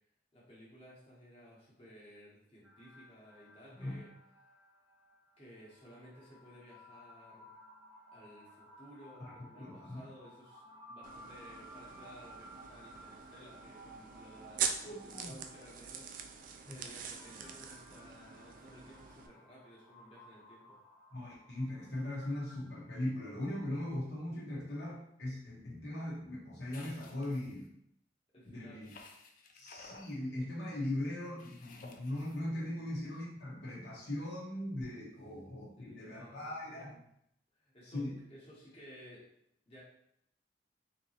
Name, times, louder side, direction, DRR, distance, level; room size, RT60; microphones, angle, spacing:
voice 1, 0.3-4.1 5.4-7.6 8.1-20.8 28.3-28.9 32.7-32.9 35.8-37.0 37.5-39.3 39.7-39.8, equal, 35° left, -6 dB, 1.1 m, -56 dB
sound 1, 2.6-22.6, equal, 15° right, 0.8 m, -57 dB
voice 2, 9.2-10.0 14.8-15.3 16.7-16.8 21.1-27.7 28.4-28.9 29.5-36.9 37.8-38.1, left 1 dB, 70° left, -6 dB, 1.0 m, -39 dB
sound 2, 11.0-19.3, right 7 dB, 50° right, 0.3 m, -43 dB
sound 3, 26.7-27.7 28.8-30.1 31.4-32.4, left 3 dB, 50° left, 0.4 m, -55 dB
3.7 x 2.8 x 2.9 m, 0.74 s
head